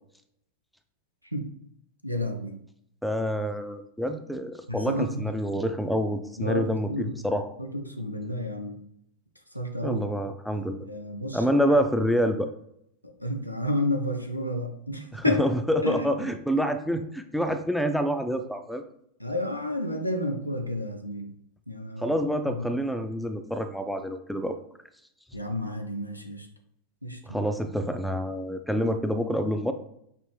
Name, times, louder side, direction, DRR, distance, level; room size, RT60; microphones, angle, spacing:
voice 1, 2.0-2.6 4.7-5.3 6.4-7.1 7.6-8.8 9.5-10.0 10.5-11.4 13.2-15.4 15.8-16.1 19.2-21.3 21.7-22.1 22.6-22.7 25.3-26.5 27.0-27.5, left 1 dB, 90° left, 3 dB, 0.5 m, -30 dB
voice 2, 3.0-7.5 9.8-10.8 11.3-12.5 15.1-18.8 22.0-24.6 27.2-29.7, equal, ahead, 7 dB, 0.3 m, -27 dB
5.1 x 2.6 x 3.1 m, 0.74 s
figure-of-eight pair, 90°, 0 cm